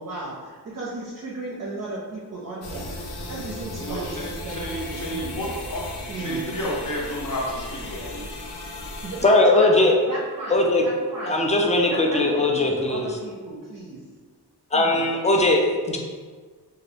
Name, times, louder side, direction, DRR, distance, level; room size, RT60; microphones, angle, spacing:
voice 1, 0.0-5.4 6.1-6.4 9.0-9.8 10.1-11.5 11.9-14.0 14.7-15.0, right 2 dB, 45° right, -5 dB, 0.5 m, -35 dB
sound 1, 2.6-9.2, left 1 dB, 90° left, 0.6 m, -36 dB
voice 2, 3.8-8.3, equal, 55° left, -3 dB, 0.9 m, -31 dB
voice 3, 9.2-10.0 10.5-10.8 11.3-13.1 14.7-16.0, left 2 dB, 20° left, 1 dB, 0.4 m, -19 dB
2.6 x 2.5 x 3.3 m, 1.5 s
wide cardioid pair, 90°, 39 cm